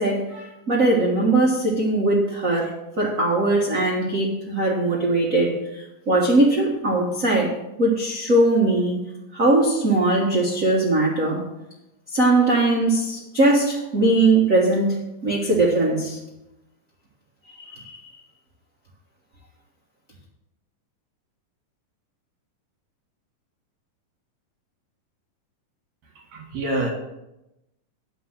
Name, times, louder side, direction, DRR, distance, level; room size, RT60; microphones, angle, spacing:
voice 1, 0.0-9.0 9.3-11.4 12.1-16.2 17.6-18.0, right 2 dB, 90° right, -3 dB, 0.7 m, -20 dB
voice 2, 26.2-26.9, right 1 dB, 60° right, 2 dB, 2.5 m, -27 dB
9.7 x 5.2 x 7.2 m, 0.92 s
omnidirectional pair, 3.9 m